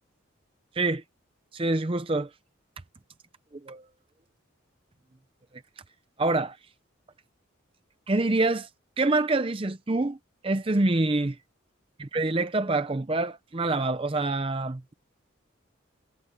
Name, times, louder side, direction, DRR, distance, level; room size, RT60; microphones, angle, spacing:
voice 1, 1.5-2.3 3.6-3.8 6.2-6.6 8.1-8.7 9.0-10.2 10.4-11.4 12.1-14.9, right 2 dB, 25° right, 0.6 m, -26 dB
head